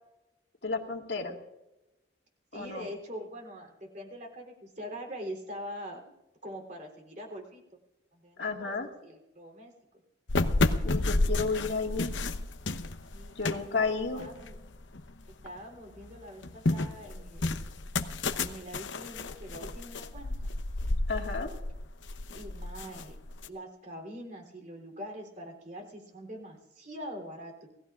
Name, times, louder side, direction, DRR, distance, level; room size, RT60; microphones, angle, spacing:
voice 1, 0.6-1.4 2.5-2.9 8.4-8.9 10.8-12.1 13.4-14.3 21.1-21.5, left 4 dB, 70° left, 2 dB, 2.0 m, -32 dB
voice 2, 2.5-6.0 6.4-7.6 8.1-9.7 13.1-13.9 14.1-14.6 15.3-17.6 18.4-20.5 22.3-23.2 23.5-27.7, equal, 40° right, 2 dB, 3.4 m, -43 dB
sound 1, 10.3-15.5 15.9-23.5, left 2 dB, 90° left, 0.9 m, -31 dB
28.0 x 17.5 x 2.5 m, 0.96 s
head